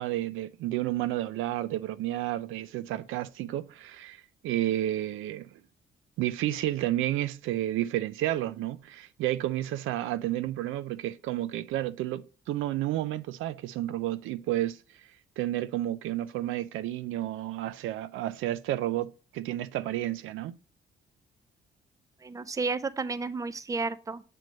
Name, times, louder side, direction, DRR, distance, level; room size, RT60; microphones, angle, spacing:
voice 1, 0.0-5.5 6.2-14.8 15.4-20.5, right 14 dB, 85° right, 0.4 m, -31 dB
voice 2, 22.2-24.2, right 4 dB, 15° right, 0.5 m, -32 dB
7.6 x 3.1 x 5.2 m
cardioid pair, 90°, 20 cm